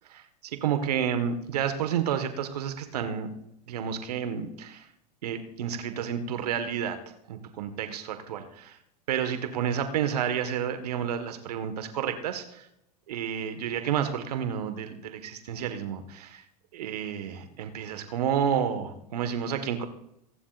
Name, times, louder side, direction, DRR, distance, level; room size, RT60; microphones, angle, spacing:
voice 1, 0.1-3.3 3.7-4.9 5.2-7.0 7.3-8.8 9.1-12.7 13.1-16.4 16.7-19.9, right 8 dB, 70° right, 8 dB, 1.6 m, -30 dB
26.0 x 11.5 x 2.6 m, 0.79 s
hypercardioid pair, 95°, 21 cm